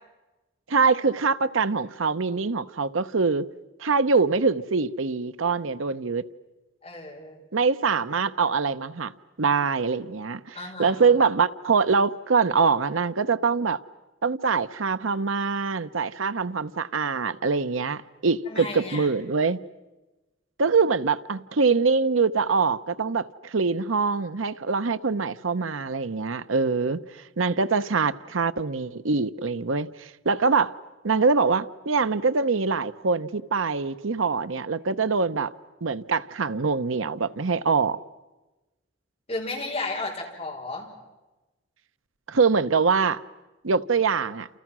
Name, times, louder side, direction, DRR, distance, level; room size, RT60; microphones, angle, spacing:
voice 1, 0.7-3.5 3.8-6.3 7.5-9.1 9.4-13.8 14.2-19.6 20.6-30.7 31.0-35.5 35.8-38.0 42.3-43.2 43.6-44.5, right 4 dB, 85° right, 0.8 m, -24 dB
voice 2, 6.8-7.4 10.5-11.2 18.5-19.1 39.3-40.9, left 2 dB, 30° left, 5.6 m, -34 dB
29.5 x 28.5 x 6.2 m
head